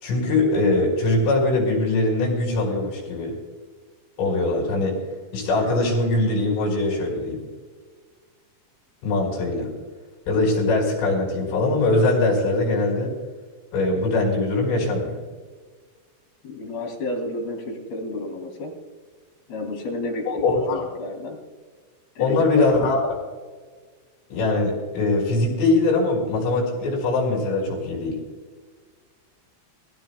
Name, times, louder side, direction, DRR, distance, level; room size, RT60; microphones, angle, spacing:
voice 1, 0.0-3.3 4.2-4.9 5.3-7.4 9.0-9.7 10.3-13.1 13.7-15.2 20.3-20.8 22.2-23.1 24.3-28.2, left 2 dB, 75° left, -2 dB, 7.5 m, -22 dB
voice 2, 16.4-18.7 19.5-21.4 22.2-23.0, left 2 dB, 55° left, 0 dB, 4.7 m, -31 dB
22.5 x 16.0 x 2.3 m, 1.5 s
omnidirectional pair, 5.7 m